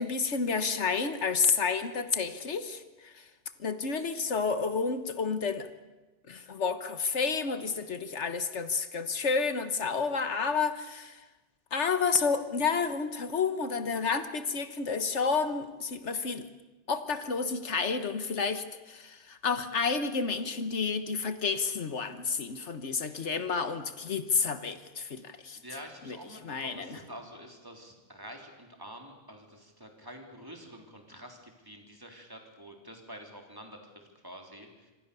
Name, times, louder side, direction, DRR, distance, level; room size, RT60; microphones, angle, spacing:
voice 1, 0.0-3.3 3.6-5.7 6.3-11.2 11.7-16.5 16.9-25.6 26.1-26.2 26.4-26.8, left 5 dB, 75° left, 10 dB, 1.6 m, -30 dB
voice 2, 22.9-23.3 25.5-34.9, equal, 20° right, 2 dB, 3.7 m, -48 dB
26.5 x 25.0 x 6.9 m, 1.1 s
omnidirectional pair, 1.2 m